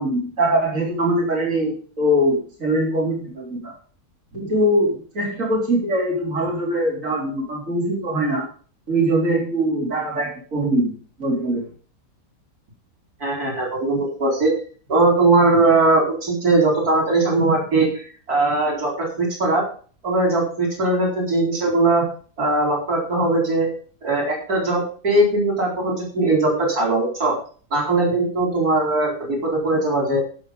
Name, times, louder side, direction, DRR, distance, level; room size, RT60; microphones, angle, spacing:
voice 1, 0.0-3.7 4.3-8.5 8.9-10.9 11.2-11.6, right 1 dB, 60° right, -4 dB, 4.3 m, -22 dB
voice 2, 13.2-14.5 14.9-19.6 20.0-22.0 22.4-23.7 24.0-27.3 27.7-30.2, right 2 dB, 80° right, -1 dB, 4.9 m, -20 dB
15.0 x 6.0 x 5.2 m, 0.41 s
omnidirectional pair, 1.6 m